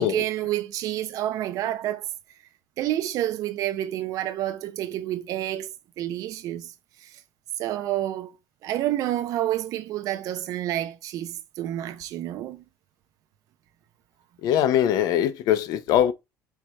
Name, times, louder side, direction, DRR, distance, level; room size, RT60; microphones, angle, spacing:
voice 1, 0.0-2.1 2.8-5.7 6.0-6.7 7.0-7.2 7.6-8.3 8.6-12.6, right 13 dB, 60° right, 0.5 m, -29 dB
voice 2, 14.4-16.1, left 10 dB, 70° left, 0.6 m, -21 dB
4.6 x 2.4 x 4.0 m
cardioid pair, 130°, 7 cm